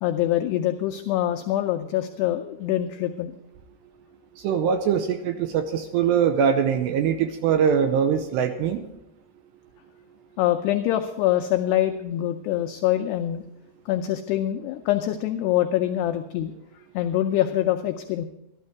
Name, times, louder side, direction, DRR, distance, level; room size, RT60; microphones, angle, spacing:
voice 1, 0.0-3.3 10.4-13.4 13.9-16.5 16.9-18.3, left 12 dB, 85° left, 6 dB, 2.3 m, -24 dB
voice 2, 4.4-8.8, right 7 dB, 80° right, 7 dB, 2.6 m, -22 dB
13.5 x 12.0 x 4.6 m, 0.84 s
omnidirectional pair, 5.5 m